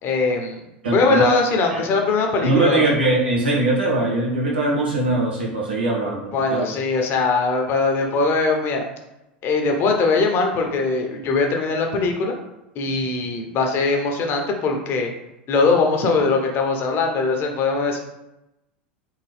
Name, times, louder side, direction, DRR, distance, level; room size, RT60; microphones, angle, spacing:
voice 1, 0.0-0.6 0.9-2.9 6.3-8.8 9.4-12.4 12.7-15.1 15.5-18.0, left 3 dB, 45° left, 2 dB, 1.0 m, -21 dB
voice 2, 0.8-1.2 1.7-1.8 2.4-6.6 12.8-12.9, right 2 dB, 85° right, -4 dB, 1.7 m, -21 dB
4.1 x 3.6 x 3.5 m, 0.91 s
hypercardioid pair, 90°, 5 cm